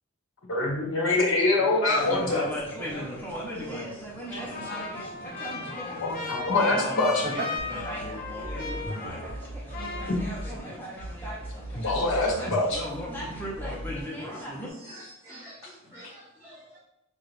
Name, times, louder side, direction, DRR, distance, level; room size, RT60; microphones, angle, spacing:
voice 1, 0.5-2.5 6.0-7.2 11.7-12.8, left 2 dB, 80° left, -7 dB, 1.5 m, -24 dB
voice 2, 1.6-3.2 7.7-8.1 8.4-9.3 9.9-10.0, right 2 dB, 40° right, -2 dB, 0.5 m, -44 dB
sound 1, 1.9-14.7, equal, 10° left, 0.9 m, -37 dB
Trumpet, 4.5-9.5 9.7-10.7, left 4 dB, 45° left, 0.7 m, -37 dB
sound 2, 7.6-10.6 11.0-14.0, equal, 60° left, 1.0 m, -39 dB
voice 3, 13.4-16.8, right 1 dB, 15° right, -11 dB, 1.2 m, -49 dB
5.9 x 2.5 x 3.3 m, 0.89 s
head